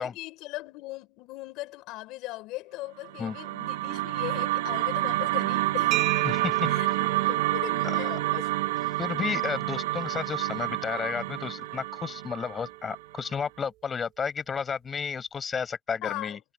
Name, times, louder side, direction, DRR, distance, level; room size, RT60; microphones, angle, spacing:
voice 1, 0.0-6.4 6.7-6.9 7.3-8.5 16.0-16.4, left 19 dB, 50° left, 5.0 m, -39 dB
sound 1, 3.1-13.4, right 17 dB, 80° right, 1.1 m, -29 dB
sound 2, 5.9-13.5, right 16 dB, 45° right, 5.2 m, -37 dB
voice 2, 6.2-6.7 7.8-8.0 9.0-16.4, left 6 dB, 20° left, 5.8 m, -32 dB
supercardioid pair, 145°, 0 cm